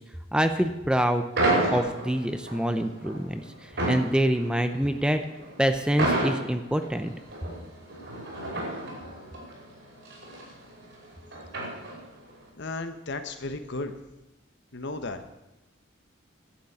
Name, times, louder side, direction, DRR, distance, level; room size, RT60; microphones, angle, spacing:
voice 1, 0.3-1.2 1.7-5.2 5.6-7.1, equal, 5° right, 8 dB, 0.7 m, -26 dB
sound 1, 1.4-12.3, right 2 dB, 65° right, 5.3 m, -31 dB
voice 2, 12.6-14.0 14.7-15.2, left 2 dB, 60° left, 8 dB, 1.2 m, -34 dB
12.0 x 8.3 x 8.6 m, 0.98 s
head